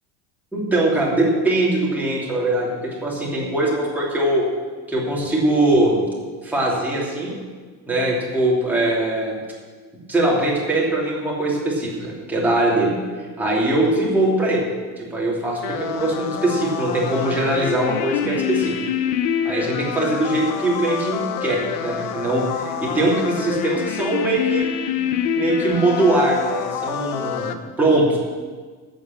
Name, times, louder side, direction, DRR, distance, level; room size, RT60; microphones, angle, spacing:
voice 1, 0.5-4.4 4.9-6.0 6.4-7.4 7.9-9.4 10.1-12.9 13.4-14.6 15.0-18.7 19.4-24.7 25.0-25.1 25.4-28.2, right 2 dB, 5° right, -5 dB, 2.7 m, -21 dB
sound 1, 15.6-27.5, left 9 dB, 70° left, 1.0 m, -26 dB
12.0 x 7.8 x 7.3 m, 1.5 s
cardioid pair, 170°, 42 cm